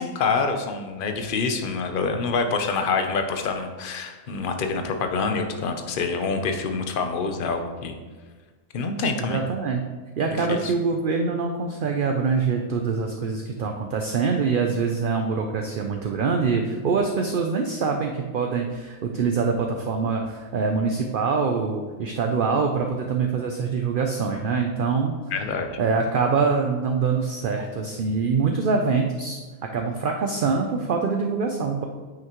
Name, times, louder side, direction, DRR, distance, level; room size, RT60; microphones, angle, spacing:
voice 1, 0.0-8.0 8.7-9.4 10.3-10.7 25.3-25.8, left 4 dB, 50° left, 5 dB, 0.8 m, -26 dB
voice 2, 9.2-9.8 10.2-25.2 25.8-29.4 29.7-31.8, right 5 dB, 55° right, 3 dB, 0.6 m, -24 dB
9.0 x 5.8 x 3.0 m, 1.4 s
omnidirectional pair, 1.4 m